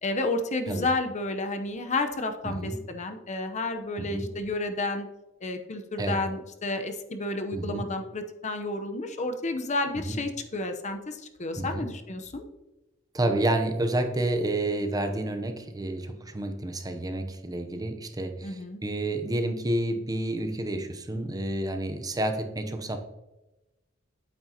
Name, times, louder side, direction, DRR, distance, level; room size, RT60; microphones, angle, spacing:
voice 1, 0.0-5.1 5.4-12.4 18.4-18.8, left 2 dB, 35° left, 7 dB, 0.8 m, -31 dB
voice 2, 2.4-2.8 4.0-4.3 6.0-6.2 7.5-7.9 9.9-10.2 11.6-11.9 13.1-23.0, right 1 dB, 20° right, 6 dB, 0.7 m, -30 dB
8.9 x 8.6 x 2.8 m, 1.0 s
head